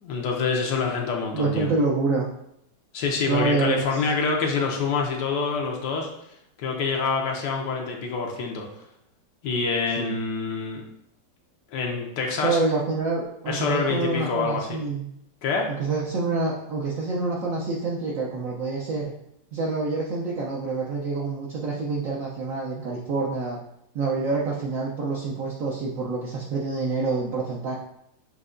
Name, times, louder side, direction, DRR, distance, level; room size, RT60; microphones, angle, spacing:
voice 1, 0.0-1.7 2.9-6.1 6.6-8.7 9.4-10.8 11.7-12.6 13.5-14.8 15.4-15.7, left 4 dB, 80° left, 0 dB, 1.3 m, -26 dB
voice 2, 1.3-2.2 3.2-4.0 10.0-10.1 12.4-15.1 15.7-19.1 19.5-23.6 23.9-27.8, right 3 dB, 65° right, -4 dB, 0.9 m, -27 dB
6.6 x 2.8 x 2.5 m, 0.77 s
omnidirectional pair, 2.0 m